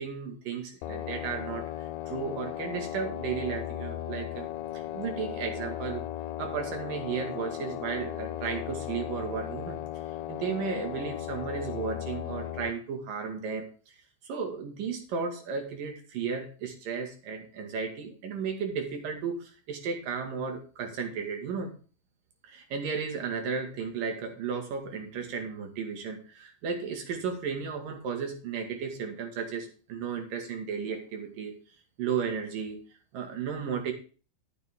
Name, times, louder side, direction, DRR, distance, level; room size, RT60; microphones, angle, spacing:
voice 1, 0.0-4.5 4.7-6.1 6.4-9.8 10.3-13.9 14.2-21.7 22.4-31.5 32.0-32.8 33.1-33.9, right 6 dB, 75° right, 4 dB, 3.8 m, -34 dB
sound 1, 0.8-12.7, left 12 dB, 80° left, 2.3 m, -36 dB
12.5 x 9.7 x 3.7 m, 0.36 s
omnidirectional pair, 3.9 m